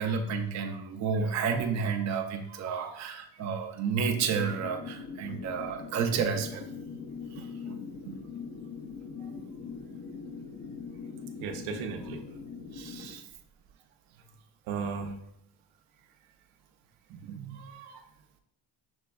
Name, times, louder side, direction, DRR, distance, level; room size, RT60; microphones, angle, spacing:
voice 1, 0.0-6.6 7.3-7.8 8.1-8.2 12.7-13.2 17.1-17.6, right 6 dB, 35° right, 3 dB, 0.5 m, -31 dB
voice 2, 2.5-3.0 9.2-9.3 11.4-12.2 14.7-15.1 17.5-18.0, right 6 dB, 85° right, 4 dB, 0.8 m, -37 dB
sound 1, 4.1-13.1, left 5 dB, 30° left, 0.5 m, -42 dB
6.2 x 3.3 x 2.3 m, 0.76 s
cardioid pair, 135°, 48 cm